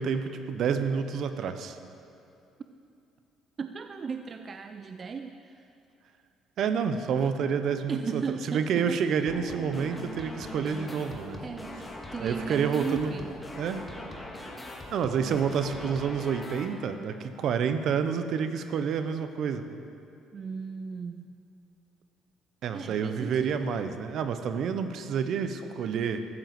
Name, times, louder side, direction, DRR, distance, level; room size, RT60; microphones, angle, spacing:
voice 1, 0.0-1.8 6.6-11.4 12.2-13.1 13.6-13.9 14.9-19.6 22.6-26.2, right 6 dB, 60° right, 9 dB, 0.9 m, -29 dB
voice 2, 3.6-5.7 7.9-9.0 9.9-10.1 11.4-13.3 15.2-15.6 20.3-21.3 22.7-23.6, right 5 dB, 35° right, 7 dB, 0.5 m, -37 dB
sound 1, 9.3-16.6, left 1 dB, 15° left, 1.8 m, -41 dB
14.0 x 7.7 x 7.7 m, 2.6 s
cardioid pair, 105°, 0 cm